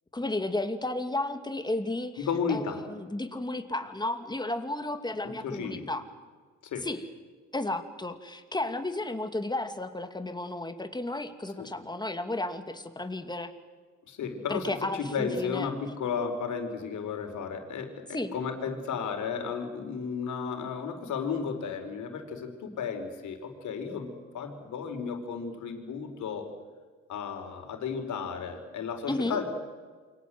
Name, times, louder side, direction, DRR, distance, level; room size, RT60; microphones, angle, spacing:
voice 1, 0.1-6.0 6.8-7.0 7.5-13.5 14.5-15.7 18.1-18.3 29.1-29.4, left 2 dB, 15° left, 8 dB, 2.7 m, -33 dB
voice 2, 2.2-2.9 5.2-5.9 6.6-6.9 11.6-11.7 14.1-26.5 27.1-29.5, left 6 dB, 75° left, 5 dB, 5.0 m, -34 dB
28.5 x 23.5 x 8.0 m, 1.5 s
cardioid pair, 90°, 30 cm